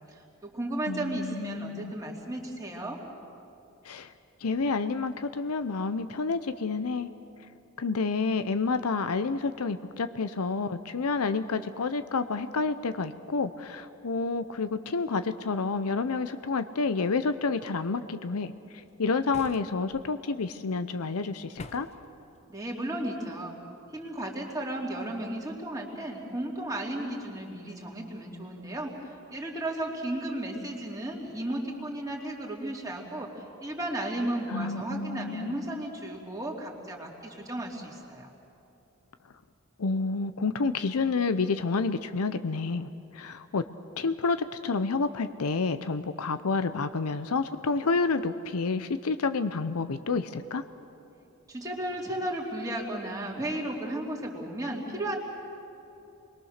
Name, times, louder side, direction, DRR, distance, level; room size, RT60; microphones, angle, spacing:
voice 1, 0.1-3.0 22.5-23.6 23.9-28.9 29.3-38.3 51.5-55.2, right 1 dB, 15° right, -1 dB, 2.7 m, -34 dB
voice 2, 0.9-1.9 3.8-4.1 4.4-7.1 7.8-18.5 19.0-21.9 34.5-35.8 39.8-43.6 44.0-50.6, left 4 dB, 85° left, 11 dB, 0.7 m, -29 dB
sound 1, 19.3-20.0 21.6-22.1, left 2 dB, 30° left, 0.8 m, -45 dB
28.0 x 22.0 x 6.6 m, 2.8 s
head